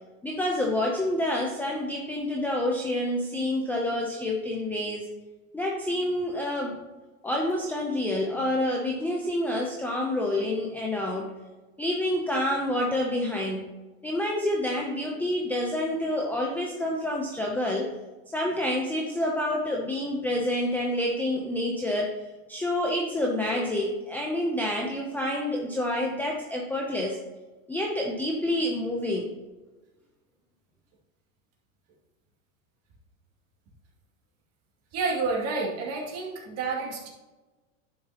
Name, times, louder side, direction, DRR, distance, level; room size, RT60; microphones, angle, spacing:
voice 1, 0.2-5.1 5.5-6.8 7.2-11.3 11.8-13.7 14.0-17.9 18.3-22.1 22.5-27.2 27.7-29.3, left 1 dB, 5° left, -1 dB, 0.6 m, -28 dB
voice 2, 34.9-37.1, right 4 dB, 35° right, -2 dB, 2.3 m, -29 dB
10.5 x 6.5 x 2.9 m, 1.1 s
supercardioid pair, 140°, 42 cm